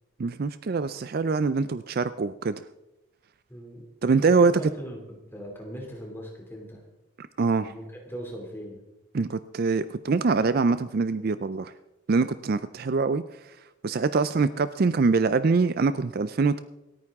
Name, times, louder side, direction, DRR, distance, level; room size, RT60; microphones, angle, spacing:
voice 1, 0.2-2.6 4.0-4.5 7.2-7.7 9.1-11.7 12.1-13.2 13.8-16.6, right 4 dB, 45° right, 13 dB, 0.4 m, -24 dB
voice 2, 3.5-3.9 4.3-5.0 5.3-6.8 7.6-8.8, equal, 10° left, 1 dB, 2.6 m, -39 dB
27.0 x 9.3 x 3.6 m, 0.95 s
head